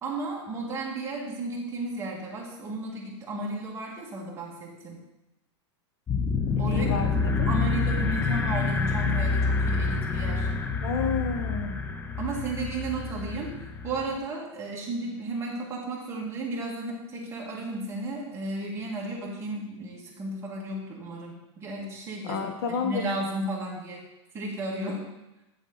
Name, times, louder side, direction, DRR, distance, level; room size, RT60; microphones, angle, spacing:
voice 1, 0.0-5.0 6.6-10.5 12.2-13.5 13.8-22.4 22.8-24.0 24.3-25.0, right 2 dB, 15° right, -3 dB, 1.7 m, -34 dB
sound 1, 6.1-14.2, left 4 dB, 10° left, 0.4 m, -27 dB
voice 2, 6.6-7.1 7.4-7.5 10.5-11.8 22.2-23.0, left 6 dB, 55° left, 5 dB, 1.1 m, -30 dB
8.3 x 7.0 x 3.9 m, 0.95 s
supercardioid pair, 155°, 16 cm